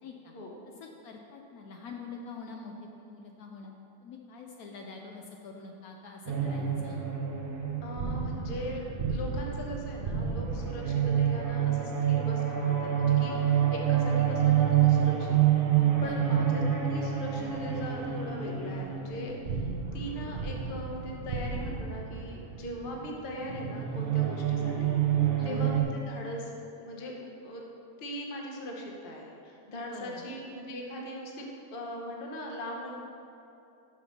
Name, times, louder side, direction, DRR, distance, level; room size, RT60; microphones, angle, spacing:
voice 1, 0.0-0.3 0.7-3.7 4.0-7.1 16.0-16.4 25.4-25.7 29.9-30.2, left 4 dB, 70° left, 1 dB, 1.0 m, -45 dB
sound 1, 6.3-25.8, right 9 dB, 65° right, 0.5 m, -28 dB
voice 2, 7.8-8.8 9.1-15.4 15.7-25.0 25.4-26.5 26.8-27.1 27.4-27.6 28.0-32.9, equal, 40° left, -1 dB, 0.9 m, -40 dB
5.9 x 5.6 x 5.8 m, 2.7 s
omnidirectional pair, 1.7 m